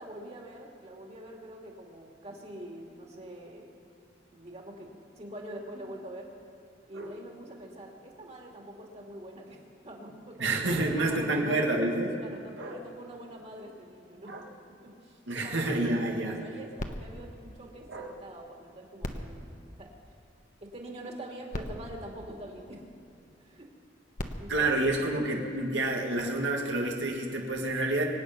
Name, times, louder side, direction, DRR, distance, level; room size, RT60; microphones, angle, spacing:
voice 1, 0.0-3.7 4.3-6.3 6.9-11.6 12.2-14.4 14.8-19.9 20.6-22.8 23.4-23.7 24.4-24.9, right 1 dB, 35° right, 0 dB, 2.5 m, -45 dB
voice 2, 10.4-12.2 12.6-12.8 14.3-14.4 15.3-16.4 17.9-18.1 24.5-28.0, right 2 dB, 85° right, 0 dB, 1.8 m, -28 dB
sound 1, 16.8-18.4 19.0-20.6 21.2-21.3 21.5-23.1 23.9-25.7 26.5-26.6, left 1 dB, 45° left, 1.1 m, -42 dB
24.5 x 9.2 x 5.8 m, 2.6 s
head